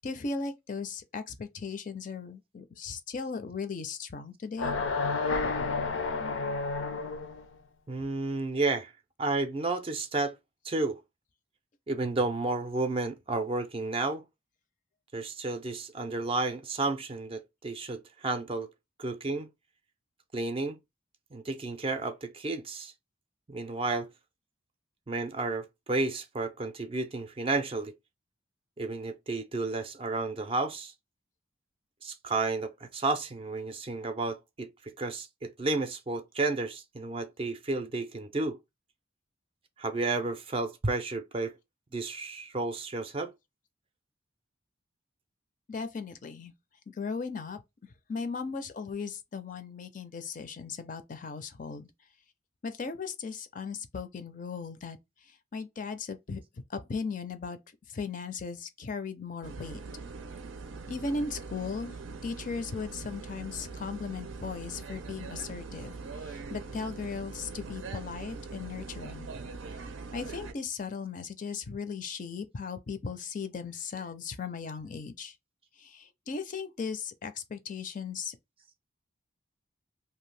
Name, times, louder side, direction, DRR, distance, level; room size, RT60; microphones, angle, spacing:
voice 1, 0.0-4.7 45.7-46.5 46.9-47.6 48.1-51.9 52.6-55.0 55.5-56.4 56.7-57.6 57.9-59.8 60.9-66.0 66.2-69.3 70.1-75.3 75.8-78.4, left 5 dB, 40° left, 0.4 m, -37 dB
sound 1, 4.6-7.5, left 4 dB, 90° left, 0.6 m, -30 dB
voice 2, 7.9-8.9 9.2-10.4 10.6-11.0 11.9-14.2 15.1-18.7 19.0-19.5 20.3-20.8 21.3-22.9 23.5-24.1 25.1-27.9 28.8-30.9 32.0-38.6 39.8-41.5 41.9-43.3, right 3 dB, 30° right, 0.4 m, -32 dB
sound 2, 59.4-70.5, right 4 dB, 85° right, 0.5 m, -42 dB
2.7 x 2.3 x 3.1 m
head